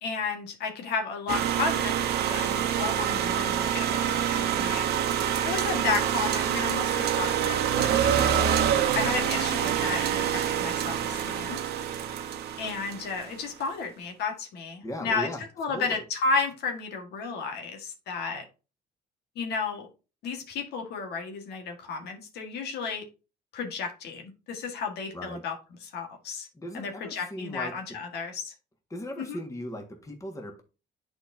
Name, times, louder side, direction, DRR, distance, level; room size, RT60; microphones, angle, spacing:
voice 1, 0.0-4.9 5.4-8.5 8.9-11.6 12.6-15.3 15.6-18.4 19.3-19.9 20.2-23.1 23.5-25.6 25.8-26.5 26.7-28.5 29.2-29.4, left 4 dB, 75° left, 1.7 m, -33 dB
sound 1, 1.3-13.3, right 9 dB, 75° right, 1.0 m, -26 dB
voice 2, 4.3-4.7 14.8-16.0 25.1-25.5 26.5-28.0 28.9-30.6, equal, 20° left, 1.7 m, -38 dB
9.8 x 4.5 x 2.7 m
cardioid pair, 110°, 17 cm